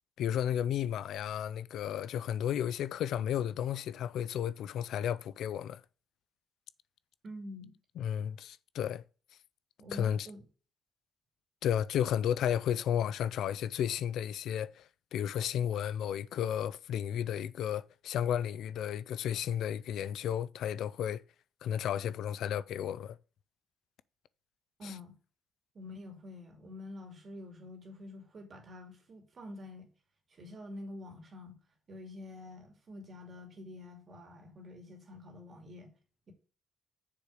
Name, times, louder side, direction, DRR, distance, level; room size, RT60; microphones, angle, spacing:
voice 1, 0.2-5.8 8.0-9.0 9.9-10.3 11.6-21.2 21.6-23.2 24.8-24.9, left 10 dB, 80° left, 0.4 m, -33 dB
voice 2, 7.2-7.7 9.8-10.5 24.8-25.1 25.7-29.9 30.3-31.6 31.9-35.9, left 1 dB, 45° right, 2.5 m, -47 dB
6.8 x 4.9 x 6.4 m
cardioid pair, 90°, 0 cm